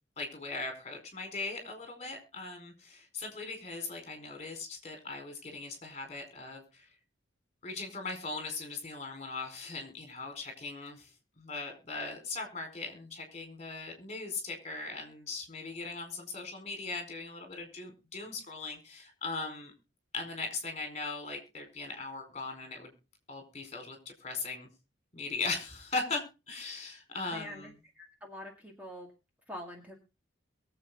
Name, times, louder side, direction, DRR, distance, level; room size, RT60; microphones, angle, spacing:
voice 1, 0.2-6.9 7.6-11.1 11.4-19.7 20.1-22.9 23.3-24.7 25.1-27.7, left 3 dB, 35° left, 5 dB, 4.5 m, -39 dB
voice 2, 27.3-29.1 29.5-30.0, left 1 dB, 10° right, 1 dB, 2.1 m, -45 dB
22.5 x 7.8 x 3.9 m, 0.30 s
head